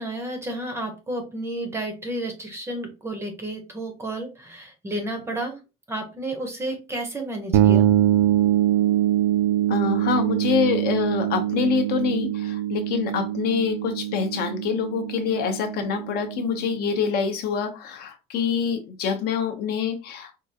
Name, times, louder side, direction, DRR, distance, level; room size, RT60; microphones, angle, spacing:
voice 1, 0.0-5.6 5.9-7.9, right 1 dB, 15° right, 4 dB, 0.6 m, -31 dB
sound 1, 7.5-17.1, right 12 dB, 75° right, 0.4 m, -23 dB
voice 2, 9.7-20.3, left 6 dB, 50° left, 6 dB, 0.6 m, -26 dB
4.5 x 2.4 x 2.6 m, 0.30 s
cardioid pair, 175°, 20 cm